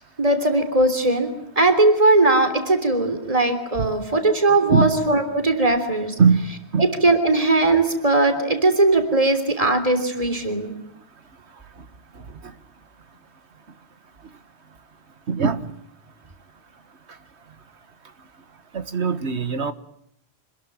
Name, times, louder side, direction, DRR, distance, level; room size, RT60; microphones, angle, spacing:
voice 1, 0.2-6.2 6.8-10.7, right 2 dB, 35° right, 8 dB, 3.5 m, -19 dB
voice 2, 15.3-15.7 18.7-19.7, right 5 dB, 90° right, 11 dB, 1.7 m, -20 dB
27.0 x 21.0 x 9.1 m, 0.75 s
omnidirectional pair, 1.1 m